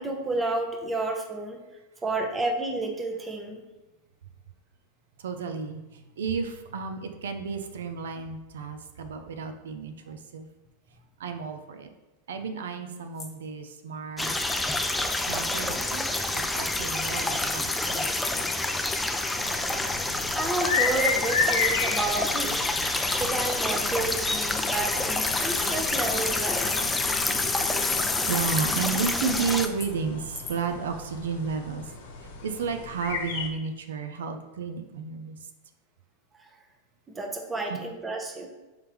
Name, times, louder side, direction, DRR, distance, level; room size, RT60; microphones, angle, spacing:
voice 1, 0.0-1.6 2.0-3.6 20.3-22.7 23.1-26.7 37.1-38.5, right 2 dB, 15° right, 3 dB, 0.7 m, -30 dB
voice 2, 5.2-10.5 11.2-11.9 12.3-14.4 15.3-16.0 16.5-18.1 18.4-18.8 28.3-31.9 32.4-35.4 37.7-37.8, right 5 dB, 85° right, 7 dB, 0.4 m, -32 dB
Bicycle, 13.2-13.3 14.3-14.4 14.8-14.9 15.1-15.2 15.4-15.5 15.7-18.6 18.9-19.0 21.0-21.1 21.4-29.8 30.4-30.5, left 5 dB, 35° left, 0.9 m, -32 dB
sound 1, 14.2-29.7, left 2 dB, 5° left, 0.3 m, -29 dB
sound 2, 19.3-33.5, left 4 dB, 80° left, 0.8 m, -34 dB
4.8 x 3.5 x 3.0 m, 1.1 s
supercardioid pair, 125°, 0 cm